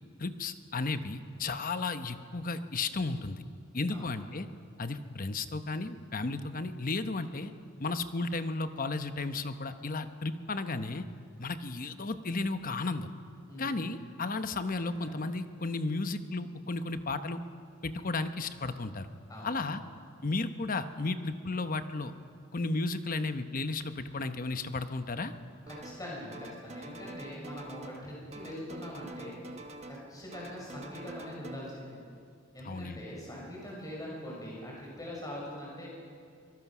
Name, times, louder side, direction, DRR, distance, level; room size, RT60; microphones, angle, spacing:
voice 1, 0.2-3.4 3.7-4.5 4.8-7.5 7.8-11.0 11.4-13.1 13.6-17.4 17.8-19.1 19.4-19.8 20.2-22.1 22.5-25.3 32.6-33.0, left 3 dB, 45° left, 10 dB, 0.9 m, -34 dB
voice 2, 13.5-14.0 15.0-15.2 19.3-19.9 25.7-29.6 29.9-32.0 32.5-35.9, equal, 20° left, -4 dB, 6.0 m, -43 dB
sound 1, 25.7-26.1 26.3-28.1 28.3-30.1 30.3-31.6, right 2 dB, 35° right, 1.2 m, -46 dB
24.5 x 20.0 x 6.1 m, 2.3 s
head